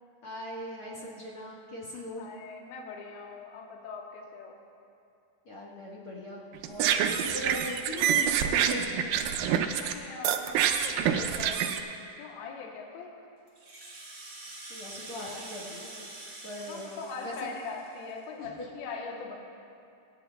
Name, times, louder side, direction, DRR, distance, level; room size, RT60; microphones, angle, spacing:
voice 1, 0.2-2.3 5.4-9.2 14.7-16.1 16.4-17.5 18.4-19.0, left 1 dB, 60° left, -5 dB, 1.4 m, -41 dB
voice 2, 2.2-4.6 9.7-13.1 14.8-15.5 16.7-19.4, left 4 dB, 75° left, 0 dB, 2.8 m, -42 dB
sound 1, 6.5-9.9 10.2-11.8, right 9 dB, 80° right, 2.1 m, -26 dB
Rattle (instrument), 13.5-18.2, right 2 dB, 40° right, 1.4 m, -46 dB
25.0 x 9.3 x 2.3 m, 2.5 s
omnidirectional pair, 4.6 m